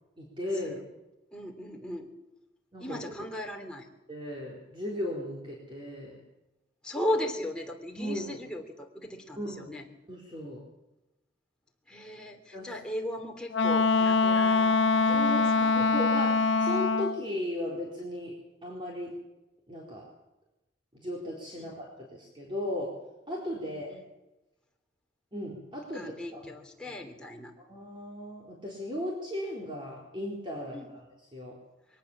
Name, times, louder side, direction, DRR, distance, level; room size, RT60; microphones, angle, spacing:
voice 1, 0.2-0.8 2.7-3.0 4.1-6.2 8.0-8.4 9.4-9.8 10.1-10.6 12.5-12.7 15.1-18.3 18.6-19.1 19.7-20.1 20.9-22.9 23.3-24.0 25.3-26.4 26.8-27.0 27.6-31.0 31.3-31.5, left 1 dB, 25° right, -3 dB, 4.3 m, -36 dB
voice 2, 1.3-2.1 2.8-3.9 6.8-9.9 11.9-14.8 15.0-15.7 21.6-21.7 23.6-24.0 25.9-27.5 30.7-30.9, left 1 dB, 5° left, 1 dB, 3.1 m, -37 dB
Wind instrument woodwind instrument, 13.5-17.2, left 3 dB, 75° left, 0.9 m, -24 dB
23.0 x 18.5 x 7.4 m, 0.97 s
head